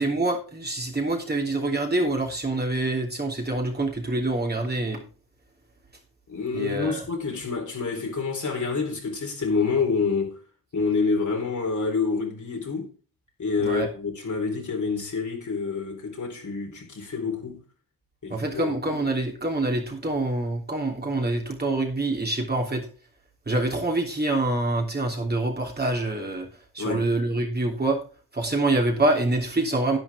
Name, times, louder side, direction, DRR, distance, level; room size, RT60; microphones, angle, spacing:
voice 1, 0.0-5.0 6.5-7.0 13.6-13.9 18.3-22.9 23.5-26.5 26.7-28.0 28.3-30.0, right 2 dB, 30° right, 3.2 m, -26 dB
voice 2, 6.3-10.4 10.7-12.9 13.4-17.6 18.2-18.7 26.8-27.1, left 4 dB, 55° left, 4.0 m, -27 dB
10.5 x 10.5 x 3.6 m
wide cardioid pair, 95°, 35 cm